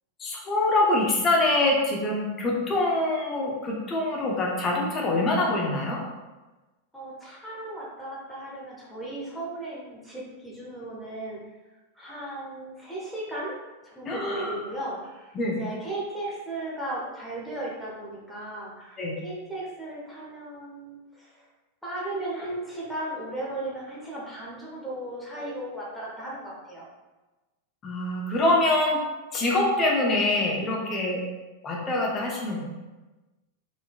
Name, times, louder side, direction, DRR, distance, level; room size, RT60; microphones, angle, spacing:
voice 1, 0.2-6.0 14.0-14.6 15.3-15.6 19.0-19.2 25.4-25.5 27.8-29.0 29.3-31.2 31.6-32.7, left 2 dB, 25° left, -2 dB, 1.1 m, -25 dB
voice 2, 6.9-11.4 11.9-13.6 13.8-21.4 21.8-26.9, right 1 dB, ahead, -7 dB, 1.4 m, -36 dB
4.7 x 3.6 x 2.4 m, 1.1 s
figure-of-eight pair, 90°, 0 cm